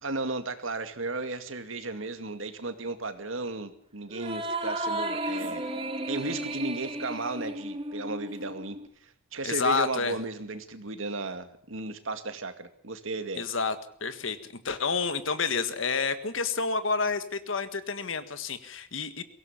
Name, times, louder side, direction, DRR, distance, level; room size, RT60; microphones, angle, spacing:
voice 1, 0.0-5.7 6.1-8.8 9.0-13.4, right 3 dB, 85° right, 8 dB, 2.3 m, -35 dB
sound 1, 4.1-8.9, right 1 dB, 30° right, 1.9 m, -34 dB
voice 2, 9.4-10.1 13.3-13.7 14.0-19.2, left 4 dB, 80° left, 11 dB, 1.7 m, -29 dB
23.0 x 16.5 x 7.3 m, 0.62 s
head